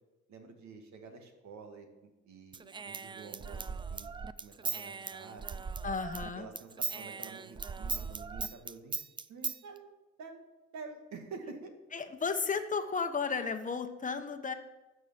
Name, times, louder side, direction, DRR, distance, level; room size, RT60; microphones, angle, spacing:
voice 1, 0.3-3.6 3.9-4.1 4.4-5.6 6.3-9.0 9.3-9.9 10.2-10.4 10.7-11.7, right 4 dB, 70° right, 4 dB, 2.2 m, -48 dB
Human voice / Scissors, 2.5-6.3 6.6-9.6, right 5 dB, 15° right, 0.3 m, -38 dB
voice 2, 5.8-6.5 11.9-14.5, left 5 dB, 25° left, 8 dB, 1.1 m, -33 dB
12.5 x 6.6 x 7.5 m, 1.1 s
cardioid pair, 120°, 30 cm